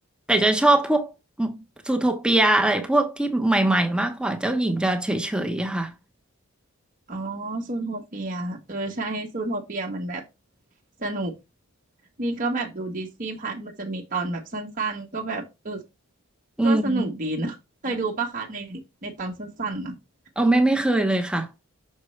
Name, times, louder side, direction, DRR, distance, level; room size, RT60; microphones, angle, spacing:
voice 1, 0.3-1.1 1.4-5.9 16.6-17.1 20.4-21.5, right 2 dB, 5° right, 0.9 m, -22 dB
voice 2, 7.1-10.2 11.0-11.3 12.2-15.8 16.6-17.6 17.8-20.0, right 2 dB, 40° right, 1.1 m, -30 dB
6.5 x 5.2 x 3.2 m
head